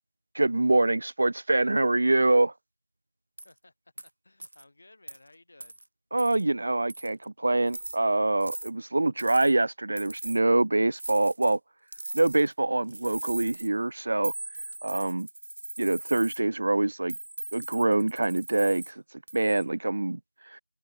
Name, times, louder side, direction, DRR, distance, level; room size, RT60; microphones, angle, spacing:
voice 1, 0.3-2.5 6.1-11.6 12.1-14.3 14.8-15.3 15.8-17.1 17.5-19.0 19.3-20.2 20.5-20.6, right 2 dB, 40° right, 0.4 m, -25 dB
sound 1, 3.4-3.5 4.0-4.1 4.4-4.6 5.1-5.2 5.6-5.8 6.2-6.4 6.9-7.2 7.7-8.0 8.4-8.7 9.2-9.5 10.0-10.4 11.0-11.6 11.9-12.5 12.9-13.7 14.2-16.4 17.1-18.9 19.3-19.6, right 1 dB, 55° right, 1.2 m, -39 dB
voice 2, 4.0-5.8, left 2 dB, 40° left, 2.7 m, -57 dB
figure-of-eight pair, 175°, 0 cm